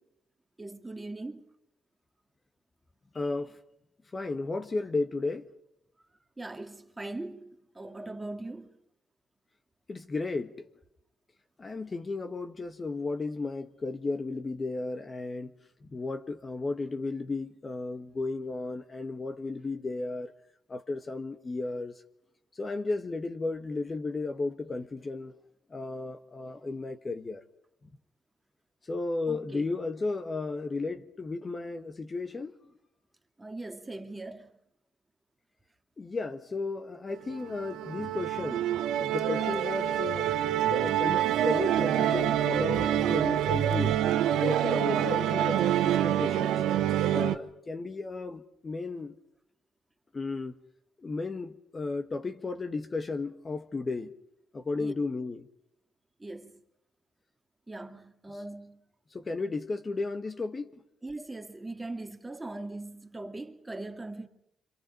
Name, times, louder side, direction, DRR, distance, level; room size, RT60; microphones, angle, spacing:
voice 1, 0.6-1.5 6.4-8.7 29.3-29.7 33.4-34.5 54.8-54.9 56.2-56.5 57.7-58.8 61.0-64.3, right 2 dB, 15° right, 2.4 m, -40 dB
voice 2, 3.1-3.6 4.1-5.5 9.9-10.5 11.6-15.5 15.8-20.3 20.7-21.9 22.5-25.3 25.7-27.4 28.8-32.5 36.0-40.4 40.7-44.0 44.4-46.6 47.1-49.2 50.1-50.5 51.0-54.1 54.5-55.5 59.1-60.7, left 3 dB, 30° left, 1.4 m, -34 dB
Musical instrument, 37.2-47.4, right 11 dB, 85° right, 1.3 m, -26 dB
27.5 x 26.0 x 5.3 m
cardioid pair, 90°, 0 cm